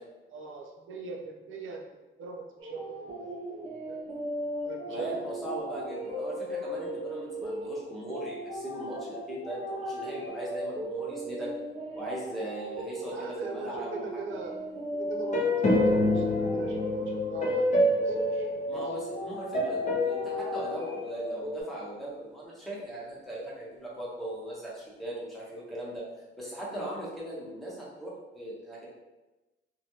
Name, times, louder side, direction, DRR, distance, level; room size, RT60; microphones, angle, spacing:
voice 1, 0.3-1.8 2.2-4.0 4.6-5.8 13.1-14.5 14.9-17.7 18.0-18.8, right 4 dB, 80° right, 1 dB, 0.5 m, -41 dB
sound 1, 2.6-21.6, equal, 30° right, 0.7 m, -37 dB
voice 2, 4.9-11.5 11.9-14.3 18.7-26.0 26.4-28.9, right 1 dB, ahead, -7 dB, 0.8 m, -39 dB
sound 2, 15.3-19.2 19.5-21.6, left 1 dB, 35° left, 0.6 m, -27 dB
3.1 x 2.2 x 2.8 m, 1.1 s
wide cardioid pair, 145°, 20 cm